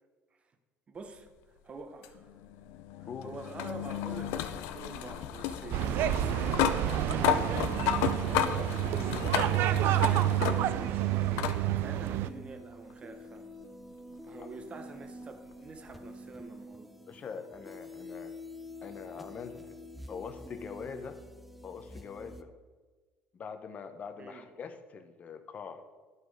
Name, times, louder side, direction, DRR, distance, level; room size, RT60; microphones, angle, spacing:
voice 1, 0.9-2.3 3.0-13.5 14.1-16.9 24.2-24.4, right 4 dB, 30° right, 7 dB, 0.9 m, -47 dB
sound 1, 2.0-10.9 11.4-11.6 12.9-13.0 15.9-16.0, left 10 dB, 85° left, 0.5 m, -33 dB
sound 2, 5.7-12.3, right 12 dB, 65° right, 0.3 m, -29 dB
sound 3, 10.1-22.4, left 1 dB, ahead, 0.5 m, -48 dB
voice 2, 17.1-18.3 18.8-19.8 20.1-21.2 21.6-22.5 23.3-25.8, left 6 dB, 35° left, 8 dB, 0.7 m, -43 dB
11.0 x 4.0 x 4.8 m, 1.4 s
cardioid pair, 125°, 4 cm